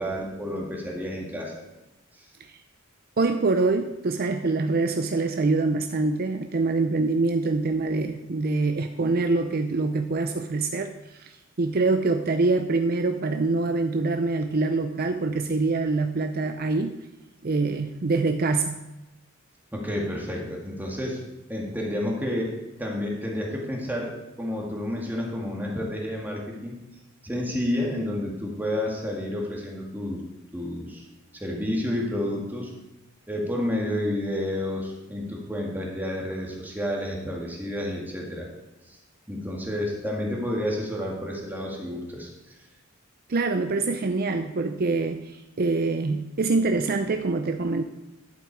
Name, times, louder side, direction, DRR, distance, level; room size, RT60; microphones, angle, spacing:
voice 1, 0.0-1.6 2.1-2.2 19.7-21.2 21.5-22.5 22.8-26.8 27.2-30.2 30.5-31.0 31.3-32.7 33.3-38.5 38.9-39.0 39.3-42.5, left 1 dB, 10° right, -2 dB, 1.9 m, -30 dB
voice 2, 3.2-16.9 17.4-18.8 43.3-47.8, right 3 dB, 50° right, 6 dB, 0.6 m, -25 dB
11.5 x 8.0 x 4.7 m, 1.0 s
head